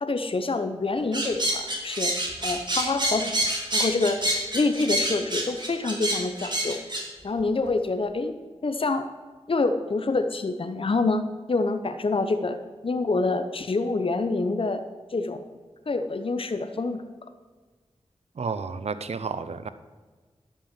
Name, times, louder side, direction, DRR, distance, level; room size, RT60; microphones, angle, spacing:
voice 1, 0.0-2.1 2.4-3.3 3.7-4.2 4.5-6.8 7.2-8.4 8.6-9.1 9.5-11.2 11.5-12.6 12.8-14.8 15.1-15.4 15.9-17.0, left 3 dB, 55° left, 9 dB, 0.8 m, -26 dB
sound 1, 1.1-7.0, right 1 dB, 40° right, 2.8 m, -27 dB
voice 2, 18.4-19.7, right 5 dB, 70° right, 12 dB, 0.6 m, -31 dB
11.5 x 5.7 x 7.5 m, 1.4 s
cardioid pair, 40°, 11 cm